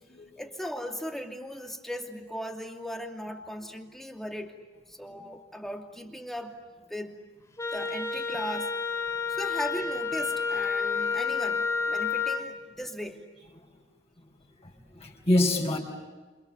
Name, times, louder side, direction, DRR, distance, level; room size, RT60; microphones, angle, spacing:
voice 1, 0.4-4.6 4.9-6.6 6.9-7.2 7.7-8.7 9.3-13.2, equal, ahead, 2 dB, 2.7 m, -37 dB
Wind instrument woodwind instrument, 7.6-12.5, left 5 dB, 20° left, 2.4 m, -30 dB
voice 2, 14.9-15.8, left 1 dB, 35° left, -1 dB, 5.9 m, -26 dB
29.0 x 28.5 x 7.1 m, 1.2 s
head